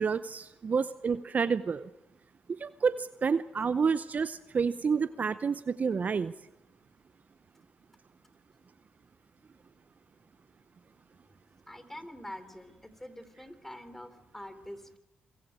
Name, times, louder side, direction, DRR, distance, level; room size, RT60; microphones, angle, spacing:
voice 1, 0.0-1.9 2.6-6.3, right 5 dB, 45° right, 14 dB, 0.7 m, -29 dB
voice 2, 11.7-15.0, left 1 dB, 10° left, 10 dB, 3.3 m, -45 dB
26.5 x 23.0 x 4.9 m, 0.93 s
hypercardioid pair, 45°, 4 cm